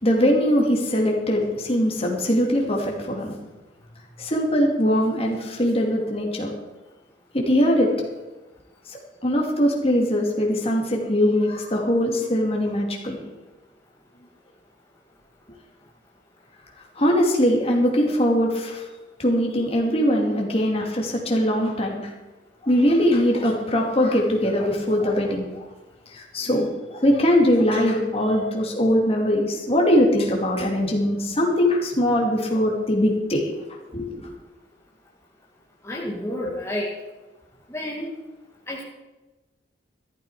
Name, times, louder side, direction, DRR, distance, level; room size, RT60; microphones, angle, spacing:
voice 1, 0.0-3.3 4.2-6.5 7.3-7.9 9.2-13.2 17.0-18.8 19.2-22.0 22.6-25.4 26.1-33.5 33.9-34.1, equal, 30° left, 0 dB, 2.6 m, -21 dB
voice 2, 35.8-36.9 37.7-38.1 38.7-38.8, left 1 dB, 15° left, -3 dB, 2.0 m, -29 dB
13.5 x 12.0 x 5.0 m, 1.1 s
head